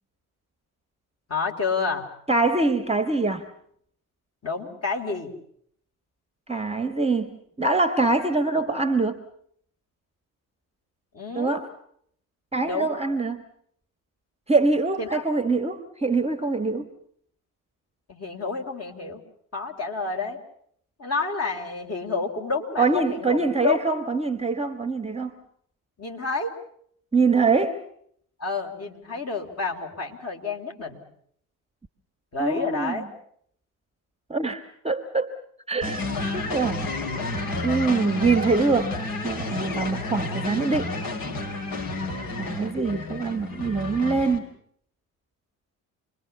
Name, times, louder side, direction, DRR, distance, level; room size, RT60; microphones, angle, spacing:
voice 1, 1.3-2.1 4.4-5.3 11.1-11.6 12.6-13.0 15.0-15.2 18.1-19.2 19.5-20.4 21.0-23.4 23.6-23.8 26.0-26.5 28.4-31.0 32.3-33.0 41.8-42.3, left 4 dB, 30° left, 2 dB, 4.1 m, -29 dB
voice 2, 2.3-3.5 6.5-9.2 11.3-11.7 12.5-13.4 14.5-16.9 22.8-25.4 27.1-27.8 32.4-33.1 34.3-35.3 35.7-36.1 36.3-36.9 37.6-39.0 39.2-40.9 42.4-44.5, right 3 dB, 15° right, 12 dB, 1.5 m, -24 dB
sound 1, 35.8-44.4, left 2 dB, 45° left, 4.0 m, -31 dB
27.5 x 22.0 x 7.1 m, 0.67 s
figure-of-eight pair, 50°, 46 cm